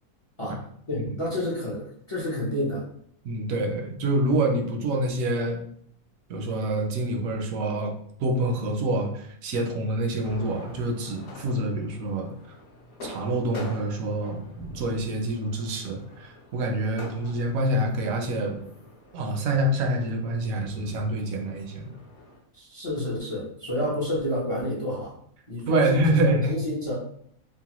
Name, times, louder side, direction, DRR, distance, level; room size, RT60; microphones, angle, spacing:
voice 1, 0.9-2.8 22.5-25.1 25.5-26.2 26.5-26.9, left 1 dB, 40° left, -6 dB, 0.4 m, -29 dB
voice 2, 3.2-5.6 6.3-12.3 13.0-18.6 19.1-22.0 25.7-26.5, right 1 dB, 70° right, 3 dB, 0.9 m, -26 dB
sound 1, 10.2-22.4, left 1 dB, 55° left, 0.9 m, -46 dB
3.0 x 2.2 x 2.9 m, 0.65 s
omnidirectional pair, 1.6 m